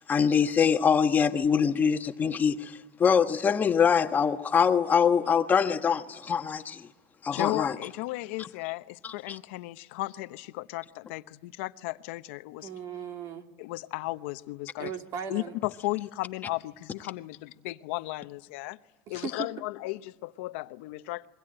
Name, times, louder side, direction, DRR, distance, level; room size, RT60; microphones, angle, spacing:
voice 1, 0.0-6.9 7.2-7.7 9.0-9.4, left 7 dB, 25° left, 1.3 m, -24 dB
voice 2, 7.3-12.7 13.6-14.9 15.3-18.8 19.1-21.3, left 20 dB, 80° left, 0.8 m, -35 dB
voice 3, 12.6-13.4 14.8-15.5 19.1-19.5, right 7 dB, 50° right, 2.4 m, -37 dB
27.0 x 23.0 x 8.9 m
supercardioid pair, 125°, 7 cm